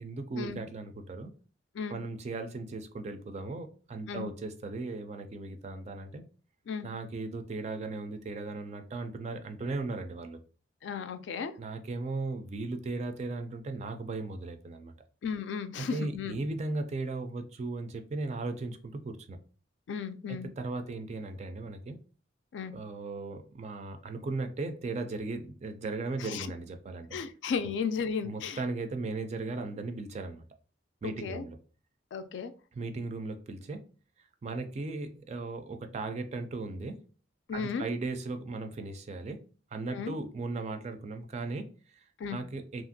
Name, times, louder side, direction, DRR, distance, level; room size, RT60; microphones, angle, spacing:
voice 1, 0.0-1.3 1.9-6.2 6.8-10.4 11.6-14.9 15.8-19.4 20.3-22.0 22.7-27.2 28.2-30.5 31.0-31.6 32.7-33.8 34.4-37.0 37.5-39.4 39.7-42.1 42.3-42.8, right 3 dB, 35° right, 7 dB, 0.3 m, -37 dB
voice 2, 10.8-11.5 15.2-16.4 19.9-20.5 22.5-22.7 26.2-26.5 27.1-28.6 31.0-31.4 32.1-32.5 37.5-37.9 39.9-40.1 42.2-42.4, left 6 dB, 70° left, 9 dB, 0.3 m, -35 dB
2.8 x 2.5 x 2.6 m, 0.39 s
head